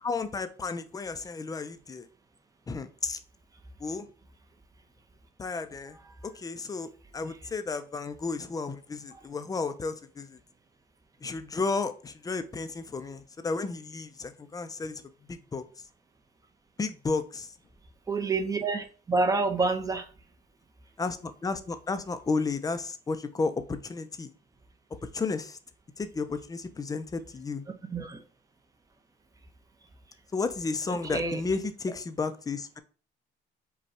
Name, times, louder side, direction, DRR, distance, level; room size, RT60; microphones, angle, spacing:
voice 1, 0.0-2.0 2.7-3.2 3.8-4.1 5.4-6.0 6.2-10.4 11.2-15.0 15.3-15.6 16.8-17.5 21.0-24.3 25.1-25.6 26.0-27.6 30.3-32.8, left 4 dB, 20° left, 0.5 m, -33 dB
voice 2, 18.1-20.0 27.9-28.2 31.1-31.4, right 3 dB, 20° right, 0.8 m, -27 dB
5.2 x 2.3 x 4.2 m
cardioid pair, 110°, 17 cm